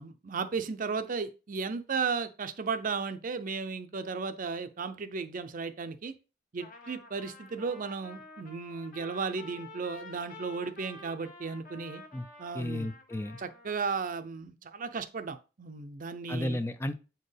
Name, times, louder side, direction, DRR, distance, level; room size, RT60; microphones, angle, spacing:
voice 1, 0.0-6.1 6.5-12.0 12.4-12.9 13.4-16.6, right 5 dB, 45° right, 10 dB, 0.5 m, -35 dB
Trumpet, 6.6-14.0, left 2 dB, 45° left, 1.3 m, -50 dB
voice 2, 12.5-13.4 16.3-17.0, left 1 dB, 15° left, 10 dB, 0.4 m, -33 dB
7.7 x 4.4 x 3.3 m, 0.32 s
head